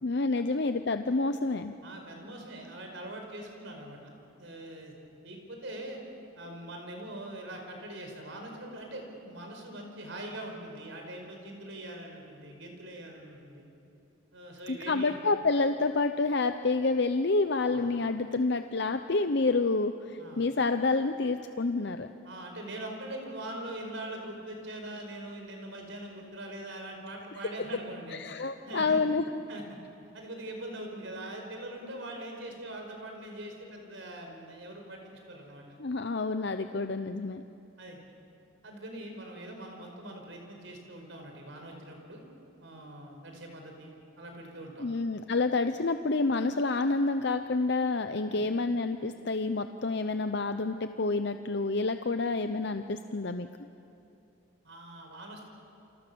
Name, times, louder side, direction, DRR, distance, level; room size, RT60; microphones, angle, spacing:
voice 1, 0.0-1.7 14.7-22.1 28.1-29.2 35.8-37.4 44.8-53.5, left 3 dB, 55° left, 8 dB, 0.7 m, -28 dB
voice 2, 1.8-4.1 4.4-4.9 5.2-6.0 6.4-13.7 14.3-15.2 17.7-17.8 20.2-20.4 22.2-28.2 28.7-29.0 29.5-29.8 30.1-35.8 37.8-38.0 38.6-42.2 42.6-44.9 48.3-48.5 54.6-55.5, right 1 dB, 65° right, 3 dB, 5.0 m, -42 dB
29.0 x 25.0 x 7.0 m, 2.8 s
head